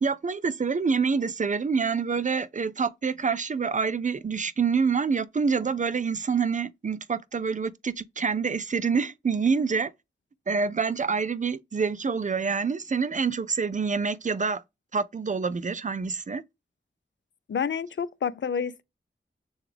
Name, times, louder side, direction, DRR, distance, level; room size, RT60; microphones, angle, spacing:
voice 1, 0.0-9.9 10.5-14.6 14.9-16.4, right 5 dB, 40° right, 0.4 m, -27 dB
voice 2, 17.5-18.8, left 7 dB, 70° left, 0.4 m, -29 dB
6.8 x 2.4 x 3.3 m
cardioid pair, 45°, 20 cm